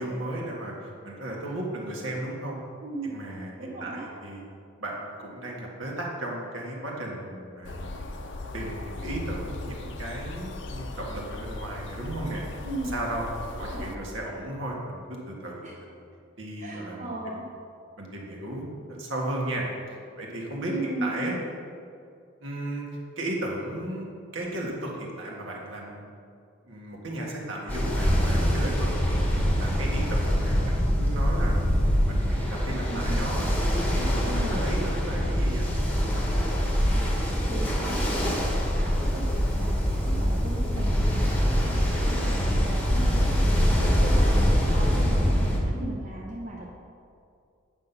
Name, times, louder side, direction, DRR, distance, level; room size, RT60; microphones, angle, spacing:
voice 1, 0.0-2.6 3.0-4.4 4.8-8.2 8.5-12.4 12.8-13.2 13.6-16.0 16.4-17.1 18.0-21.3 22.4-22.8 23.1-26.0 26.6-31.7 32.0-35.7, right 1 dB, 65° right, -2 dB, 1.7 m, -35 dB
voice 2, 2.8-3.1 3.6-4.1 12.6-12.9 13.5-13.9 15.6-15.8 16.6-17.4 20.7-21.4 30.6-31.2 32.9-33.3 34.2-34.6 36.9-37.1 37.5-38.4 38.7-46.7, right 1 dB, 35° right, -4 dB, 0.9 m, -37 dB
sound 1, 7.6-14.0, left 2 dB, 55° left, 0.6 m, -37 dB
Ocean, 27.7-45.6, equal, 5° left, 1.1 m, -24 dB
8.9 x 5.7 x 5.7 m, 2.4 s
head